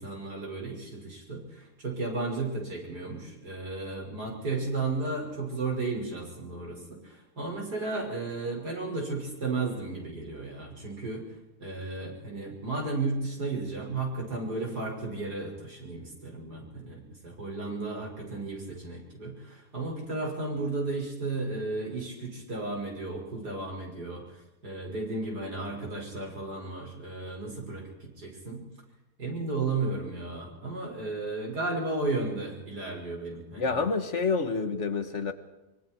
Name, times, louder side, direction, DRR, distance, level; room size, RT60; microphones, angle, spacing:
voice 1, 0.0-11.2 11.6-24.2 24.6-28.6 29.2-33.9, right 3 dB, 85° right, -1 dB, 6.4 m, -34 dB
voice 2, 33.6-35.3, left 4 dB, 50° left, 8 dB, 1.6 m, -28 dB
25.0 x 23.0 x 4.6 m, 0.96 s
omnidirectional pair, 1.7 m